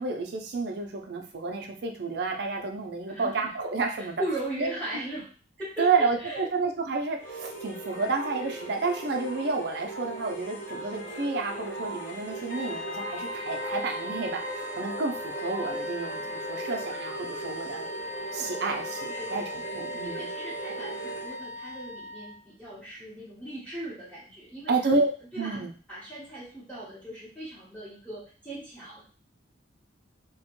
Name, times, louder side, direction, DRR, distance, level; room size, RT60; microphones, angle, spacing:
voice 1, 0.0-4.2 4.6-4.7 5.8-17.8 18.3-20.3 24.7-25.1 25.4-25.7, right 4 dB, 60° right, 3 dB, 0.5 m, -30 dB
voice 2, 3.1-3.5 4.0-5.3 5.6-5.9 6.2-6.4 18.4-18.5 19.1-24.7 25.3-25.6 25.9-29.1, right 1 dB, 10° left, -8 dB, 0.9 m, -38 dB
sound 1, 7.2-21.4, right 1 dB, 85° left, 1.4 m, -38 dB
sound 2, 12.5-22.5, left 1 dB, 40° left, 0.5 m, -39 dB
3.0 x 2.1 x 3.0 m, 0.40 s
head